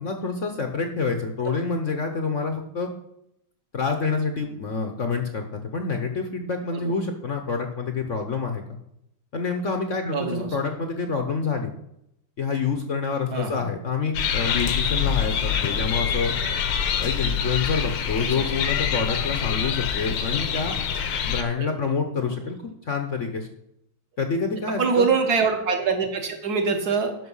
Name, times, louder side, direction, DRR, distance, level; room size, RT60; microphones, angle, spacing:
voice 1, 0.0-2.9 3.7-5.4 5.7-8.6 9.3-11.7 12.4-16.3 17.0-20.7 21.2-22.6 22.9-23.5 24.2-25.0, left 5 dB, 50° left, 5 dB, 0.9 m, -27 dB
voice 2, 10.1-10.6 13.3-13.7 18.2-18.4 21.5-21.7 22.2-22.3 24.8-27.2, right 5 dB, 50° right, 6 dB, 1.7 m, -24 dB
sound 1, 14.1-21.4, left 7 dB, 75° left, 1.7 m, -25 dB
12.0 x 5.5 x 5.5 m, 0.78 s
omnidirectional pair, 2.4 m